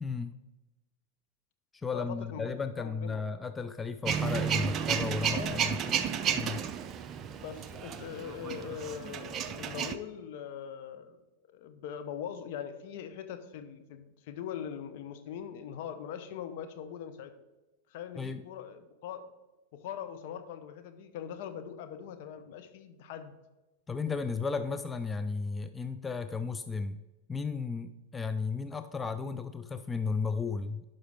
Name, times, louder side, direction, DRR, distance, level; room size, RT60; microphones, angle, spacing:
voice 1, 0.0-0.3 1.8-5.8 6.3-6.6 18.2-18.4 23.9-27.0 27.3-30.8, left 5 dB, 15° left, 10 dB, 0.4 m, -34 dB
voice 2, 1.9-2.5 2.8-3.2 5.3-5.8 7.3-11.2 11.5-17.3 17.9-19.3 19.7-23.3, left 8 dB, 60° left, 8 dB, 0.9 m, -41 dB
Male speech man speaking / Vehicle / Engine starting, 4.1-10.0, right 8 dB, 35° right, 0.6 m, -32 dB
11.0 x 5.3 x 3.6 m, 1.1 s
hypercardioid pair, 100°, 0 cm